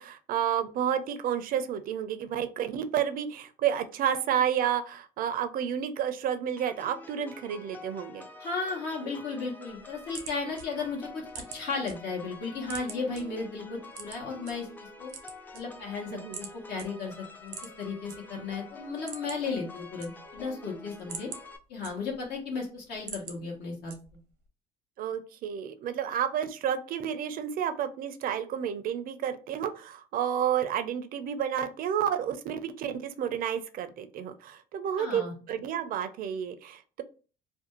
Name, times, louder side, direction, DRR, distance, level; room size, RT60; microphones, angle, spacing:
voice 1, 0.0-8.3 16.1-16.4 25.0-37.0, right 9 dB, 60° right, 10 dB, 0.4 m, -30 dB
sound 1, 6.6-21.6, left 3 dB, 10° left, 0.3 m, -48 dB
voice 2, 8.4-15.1 15.5-17.1 17.4-21.3 21.7-23.9 35.0-35.3, left 4 dB, 75° left, -1 dB, 0.9 m, -35 dB
sound 2, 9.7-11.9 12.3-13.2 13.9-14.5 15.0-16.0 16.3-16.5 16.8-16.9 17.4-18.2 18.5-18.6 18.9-19.5 19.8-20.5 20.9-22.3 22.7-23.4 23.9-24.3, right 7 dB, 90° right, 0.7 m, -43 dB
2.5 x 2.2 x 2.8 m, 0.36 s
cardioid pair, 110°, 17 cm